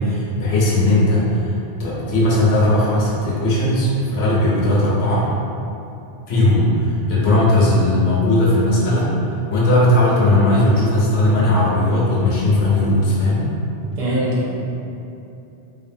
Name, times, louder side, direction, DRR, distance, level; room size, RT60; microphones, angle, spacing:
voice 1, 0.0-5.3 6.3-9.1 9.5-13.5, left 1 dB, 70° left, -6 dB, 0.9 m, -17 dB
voice 2, 14.0-14.5, equal, 50° right, -6 dB, 0.6 m, -21 dB
2.6 x 2.4 x 2.6 m, 2.7 s
omnidirectional pair, 1.1 m